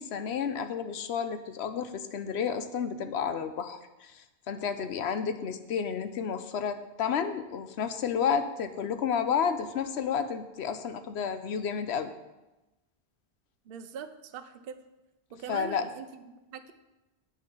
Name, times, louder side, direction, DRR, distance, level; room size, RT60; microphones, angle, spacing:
voice 1, 0.0-12.1 15.5-15.8, left 7 dB, 75° left, 10 dB, 1.0 m, -31 dB
voice 2, 13.6-14.8 15.3-16.7, right 6 dB, 60° right, 9 dB, 0.8 m, -42 dB
9.1 x 6.7 x 5.4 m, 1.0 s
omnidirectional pair, 1.1 m